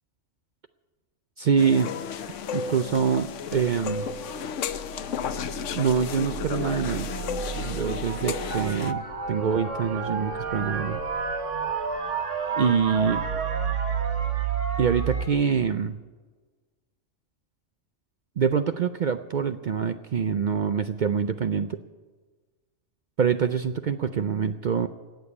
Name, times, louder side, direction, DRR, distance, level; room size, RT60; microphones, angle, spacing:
voice 1, 1.4-1.9 2.5-4.1 5.7-7.1 7.6-11.0 12.6-13.2 14.8-16.0 18.4-21.8 23.2-24.9, right 6 dB, 55° right, 9 dB, 0.5 m, -25 dB
sound 1, 1.6-8.9, left 8 dB, 90° left, 1.0 m, -33 dB
sound 2, 1.9-15.3, right 6 dB, 85° right, 1.7 m, -32 dB
17.5 x 7.0 x 9.6 m, 1.3 s
omnidirectional pair, 1.2 m